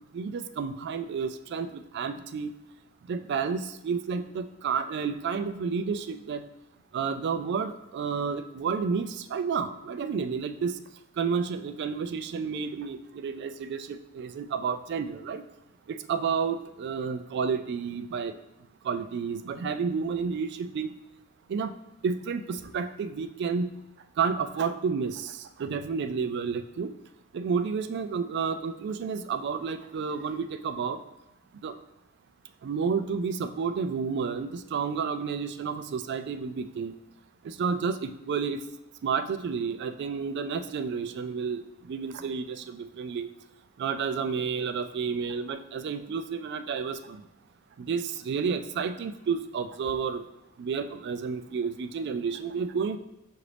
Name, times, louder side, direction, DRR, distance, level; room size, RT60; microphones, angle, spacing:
voice 1, 0.1-2.5 3.1-6.5 6.9-10.8 11.2-15.4 15.9-18.3 18.8-20.9 21.5-21.7 22.0-23.7 24.2-26.9 27.3-31.0 31.6-31.8 32.6-36.9 37.4-38.6 39.0-41.6 41.9-43.3 43.8-47.2 47.8-50.2 50.6-53.0, right 5 dB, 55° right, 9 dB, 0.3 m, -31 dB
5.8 x 2.6 x 3.3 m, 0.93 s
head